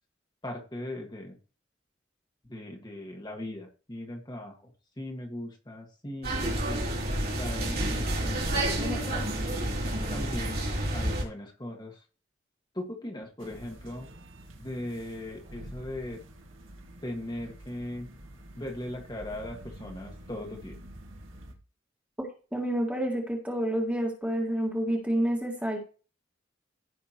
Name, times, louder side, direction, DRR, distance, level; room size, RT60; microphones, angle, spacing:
voice 1, 0.4-1.4 2.4-6.9 7.3-9.3 10.1-10.6 10.9-12.0 12.7-14.1 14.6-16.2 17.0-18.1 18.5-20.8, left 1 dB, 20° left, 2 dB, 1.7 m, -39 dB
sound 1, 6.2-11.2, right 1 dB, 50° right, 3.0 m, -29 dB
sound 2, 13.4-21.5, right 1 dB, 85° right, 1.8 m, -48 dB
voice 2, 22.5-25.8, right 1 dB, 5° right, 0 dB, 1.9 m, -28 dB
15.5 x 6.0 x 3.0 m, 0.36 s
head